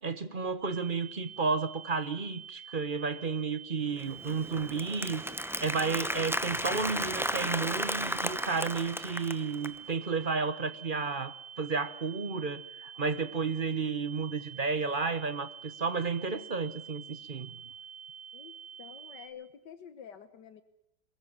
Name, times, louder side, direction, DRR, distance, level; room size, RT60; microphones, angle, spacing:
voice 1, 0.0-5.2 5.6-17.5, right 4 dB, 35° right, 1.1 m, -32 dB
sound 1, 0.6-19.3, right 7 dB, 70° right, 8.6 m, -48 dB
Applause, 4.0-9.8, equal, 5° right, 0.4 m, -34 dB
voice 2, 18.3-20.6, left 8 dB, 85° left, 1.9 m, -49 dB
22.0 x 22.0 x 7.3 m
omnidirectional pair, 1.8 m